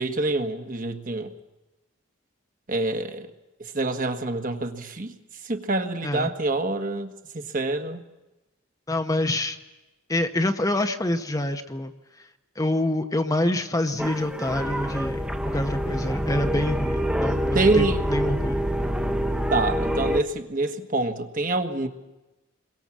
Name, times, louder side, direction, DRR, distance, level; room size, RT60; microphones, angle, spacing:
voice 1, 0.0-1.3 2.7-3.3 3.6-5.1 5.4-8.0 17.5-18.0 19.5-21.9, right 2 dB, 40° right, 1.5 m, -26 dB
voice 2, 8.9-9.6 10.1-11.9 12.6-18.6, left 1 dB, 15° left, 0.9 m, -26 dB
sound 1, 14.0-20.2, equal, 5° right, 1.1 m, -26 dB
28.0 x 22.5 x 7.4 m
head